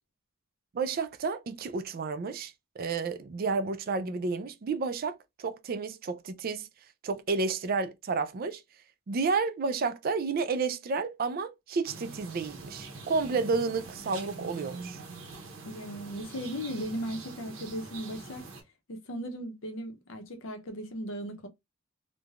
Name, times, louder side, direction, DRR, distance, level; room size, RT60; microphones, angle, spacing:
voice 1, 0.7-6.7 7.0-8.6 9.1-15.0, right 4 dB, 45° right, 0.4 m, -31 dB
sound 1, 11.8-18.6, right 3 dB, 75° right, 0.8 m, -44 dB
voice 2, 15.6-18.4 18.9-21.5, equal, 70° left, 0.7 m, -37 dB
3.2 x 2.1 x 2.3 m
head